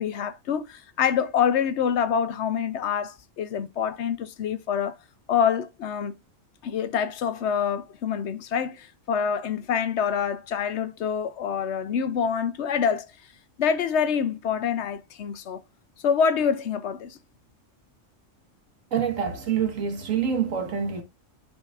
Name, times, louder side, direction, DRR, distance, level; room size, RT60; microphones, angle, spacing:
voice 1, 0.0-5.0 5.3-6.1 6.6-13.1 13.6-15.6 16.0-17.2, left 7 dB, 65° left, 0.9 m, -26 dB
voice 2, 18.9-21.0, right 7 dB, 90° right, 1.7 m, -26 dB
12.0 x 4.2 x 2.4 m
omnidirectional pair, 1.3 m